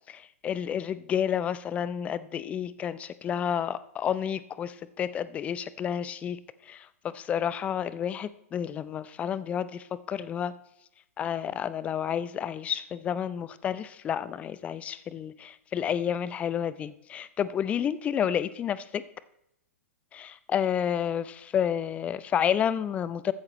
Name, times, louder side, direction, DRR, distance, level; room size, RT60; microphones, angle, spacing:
voice 1, 0.1-6.4 6.7-10.5 11.2-19.0 20.1-23.3, left 9 dB, 15° left, 16 dB, 0.5 m, -30 dB
15.0 x 10.5 x 3.1 m, 0.80 s
figure-of-eight pair, 115°, 8 cm